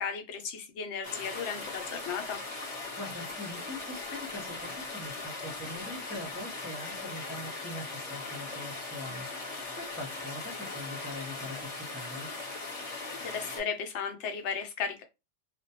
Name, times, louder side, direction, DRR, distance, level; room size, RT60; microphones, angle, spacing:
voice 1, 0.0-2.4 13.2-15.0, left 6 dB, 85° left, 0.9 m, -35 dB
sound 1, 1.0-13.6, left 3 dB, 35° left, 0.7 m, -39 dB
voice 2, 3.0-12.3, left 1 dB, 20° right, 0.4 m, -43 dB
2.1 x 2.1 x 2.7 m
omnidirectional pair, 1.2 m